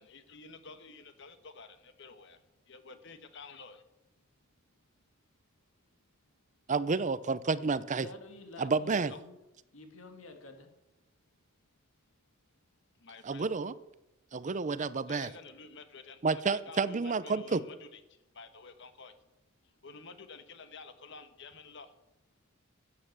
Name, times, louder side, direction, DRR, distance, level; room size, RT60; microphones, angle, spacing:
voice 1, 0.0-2.4 2.7-3.8 9.1-9.2 13.0-13.4 15.1-19.1 19.6-21.9, left 4 dB, 60° left, 10 dB, 1.3 m, -50 dB
voice 2, 6.7-8.1 8.6-9.1 13.2-13.7 14.3-15.3 16.2-17.6, right 4 dB, 35° right, 16 dB, 0.6 m, -30 dB
voice 3, 8.0-9.4 9.7-10.7, left 2 dB, 90° left, 6 dB, 2.2 m, -49 dB
11.5 x 8.9 x 7.6 m, 0.94 s
head